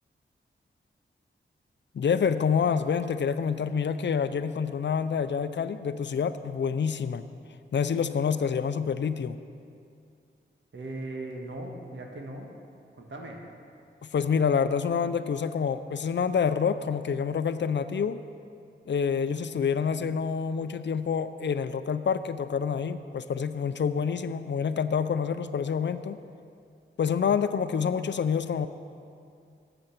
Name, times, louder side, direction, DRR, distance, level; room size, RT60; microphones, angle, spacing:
voice 1, 1.9-7.3 7.7-9.4 14.1-18.2 18.9-26.2 27.0-28.7, left 6 dB, 65° left, 12 dB, 0.5 m, -27 dB
voice 2, 10.7-12.5 13.0-13.4, right 2 dB, 70° right, 1 dB, 1.5 m, -38 dB
12.5 x 7.8 x 5.9 m, 2.4 s
wide cardioid pair, 80°, 20 cm